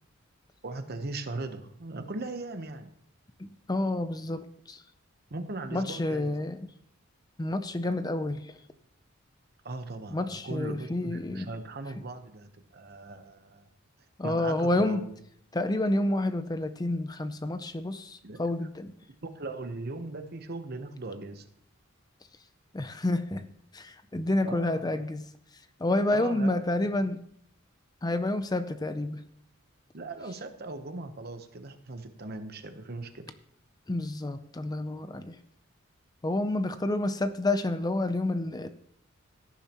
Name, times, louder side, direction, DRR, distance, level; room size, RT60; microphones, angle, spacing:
voice 1, 0.6-2.9 5.3-6.5 9.6-13.7 14.2-15.1 18.2-18.4 19.3-21.5 24.4-25.1 26.1-26.7 29.9-33.3, right 2 dB, 50° right, 8 dB, 1.0 m, -39 dB
voice 2, 3.4-4.8 5.7-6.6 7.4-8.4 10.1-11.5 14.2-15.1 15.5-18.9 22.7-23.4 23.7-25.3 25.8-27.2 28.0-29.2 33.9-35.4 36.2-38.7, left 2 dB, 20° left, 11 dB, 0.5 m, -29 dB
17.5 x 10.5 x 3.0 m, 0.69 s
head